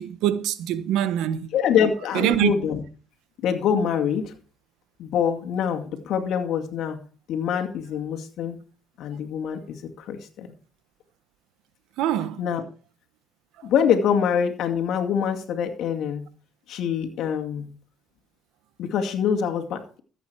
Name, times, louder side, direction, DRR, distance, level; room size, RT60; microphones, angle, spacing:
voice 1, 0.0-1.5 2.1-2.5 12.0-12.4, right 11 dB, 85° right, 1.0 m, -24 dB
voice 2, 1.5-2.8 3.4-4.3 5.0-7.0 7.3-8.6 9.0-10.5 12.4-12.6 13.6-16.2 16.7-17.7 18.8-20.0, left 8 dB, 75° left, 2.2 m, -25 dB
14.5 x 8.4 x 4.6 m
cardioid pair, 80°, 0 cm